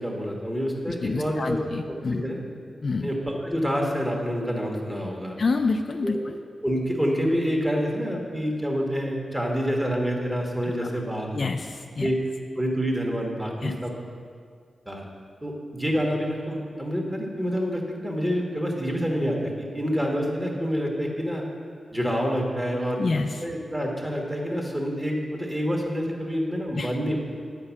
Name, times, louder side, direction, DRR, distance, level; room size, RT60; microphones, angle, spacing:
voice 1, 0.0-1.6 1.9-2.4 3.0-5.4 6.0-6.2 6.6-11.4 12.0-12.2 12.6-13.9 14.9-15.1 15.4-21.4 21.9-23.0 23.4-27.2, equal, 10° right, 0 dB, 1.3 m, -27 dB
voice 2, 0.9-2.2 2.8-3.1 5.4-6.4 10.8-10.9 11.3-12.1 13.6-13.7 23.0-23.4 26.7-27.0, left 3 dB, 45° left, 5 dB, 0.3 m, -27 dB
9.7 x 5.3 x 7.1 m, 2.1 s
wide cardioid pair, 150°, 0 cm